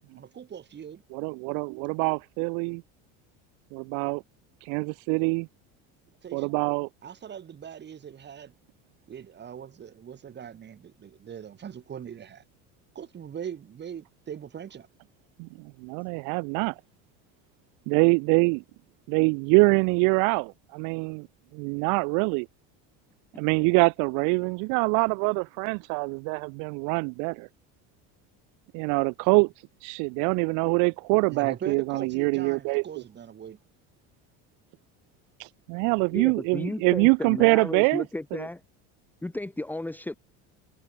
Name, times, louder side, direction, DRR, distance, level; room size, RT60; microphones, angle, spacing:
voice 1, 0.1-1.0 6.2-6.5 7.0-8.5 9.1-12.4 12.9-14.9 31.3-33.6, right 8 dB, 30° right, 7.8 m, -40 dB
voice 2, 1.1-2.8 3.7-4.2 4.6-5.5 6.3-6.9 15.4-15.5 15.8-16.7 17.9-18.6 19.1-21.3 21.5-22.5 23.4-27.5 28.7-29.5 29.8-32.8 35.4-38.0, right 36 dB, 65° right, 0.5 m, -24 dB
voice 3, 36.1-38.6 39.2-40.1, left 2 dB, 5° left, 1.7 m, -34 dB
cardioid pair, 135°, 34 cm